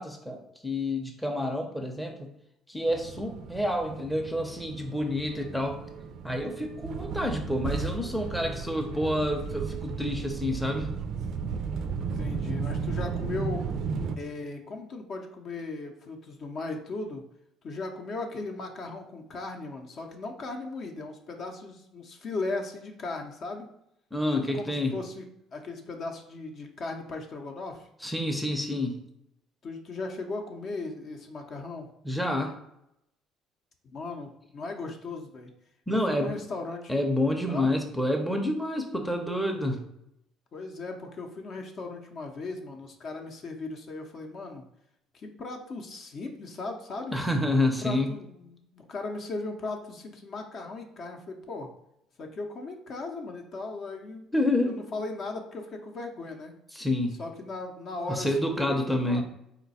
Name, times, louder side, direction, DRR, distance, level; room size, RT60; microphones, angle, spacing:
voice 1, 0.0-2.3 2.7-5.8 6.2-10.9 24.1-24.9 28.0-29.0 32.0-32.6 35.9-36.3 36.9-39.8 47.1-48.1 54.3-54.8 56.7-57.2 58.1-59.2, left 1 dB, ahead, 3 dB, 0.6 m, -28 dB
sound 1, 2.9-14.2, right 5 dB, 60° right, 0.4 m, -34 dB
voice 2, 12.0-13.7 14.2-17.2 17.6-23.7 24.5-25.3 25.5-27.9 29.6-31.9 33.8-35.5 35.9-36.9 37.5-37.7 40.5-44.6 45.1-47.2 47.8-51.7 52.2-54.3 54.6-56.5 57.2-59.2, left 3 dB, 50° left, 3 dB, 0.6 m, -37 dB
4.0 x 2.2 x 4.0 m, 0.80 s
cardioid pair, 100°, 0 cm